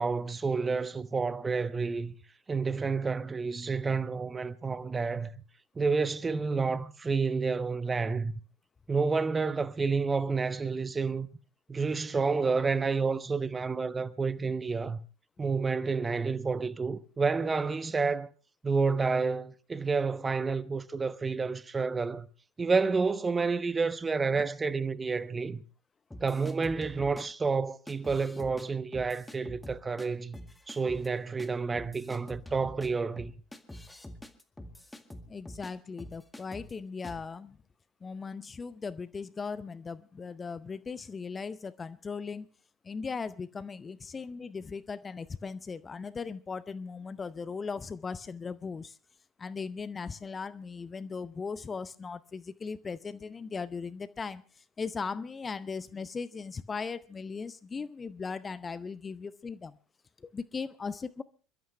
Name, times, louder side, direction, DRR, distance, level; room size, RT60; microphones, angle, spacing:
voice 1, 0.0-2.1 2.5-5.3 5.8-8.3 8.9-11.3 11.7-15.0 15.4-18.3 18.6-22.3 22.6-25.6 26.2-30.4 30.7-33.3, right 4 dB, 20° right, 1.0 m, -29 dB
sound 1, 26.1-27.2 27.9-28.7 28.9-30.1 30.3-31.1 31.4-31.5 31.7-35.7 36.0-36.7 37.0-37.3, left 1 dB, 10° left, 1.9 m, -46 dB
voice 2, 35.3-37.6 38.0-42.5 42.8-49.0 49.4-59.7 60.2-61.2, left 5 dB, 25° left, 0.7 m, -38 dB
27.0 x 12.5 x 3.3 m
figure-of-eight pair, 75°, 0 cm